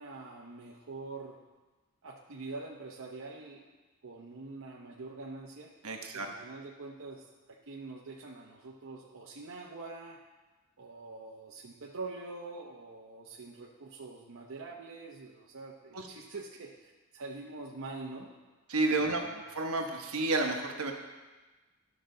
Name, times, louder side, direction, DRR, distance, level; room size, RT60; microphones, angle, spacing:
voice 1, 0.0-1.4 2.0-3.7 4.0-5.7 6.1-7.3 7.7-10.2 10.8-18.3 19.0-19.4, right 3 dB, 65° right, -3 dB, 0.8 m, -45 dB
voice 2, 5.8-6.3 15.9-16.1 18.7-20.9, right 2 dB, 80° right, 3 dB, 1.1 m, -31 dB
12.5 x 6.1 x 3.8 m, 1.2 s
head